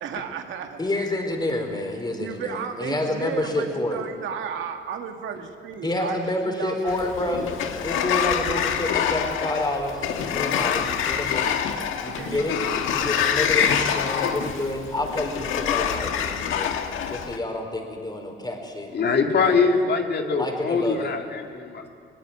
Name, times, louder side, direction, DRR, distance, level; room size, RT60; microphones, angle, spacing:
voice 1, 0.0-0.8 2.1-7.6 11.4-11.8 12.1-12.5, right 7 dB, 80° right, 4 dB, 2.1 m, -34 dB
voice 2, 0.8-4.0 5.8-7.4 7.8-11.5 12.0-12.5 12.9-16.7 17.1-18.9 19.4-19.7 20.3-21.1, left 1 dB, 20° left, 3 dB, 4.7 m, -28 dB
Sliding door, 6.9-17.4, left 8 dB, 85° left, 1.6 m, -26 dB
voice 3, 18.9-21.9, left 4 dB, 55° left, 3 dB, 2.3 m, -23 dB
20.5 x 19.0 x 9.1 m, 2.2 s
cardioid pair, 90°, 20 cm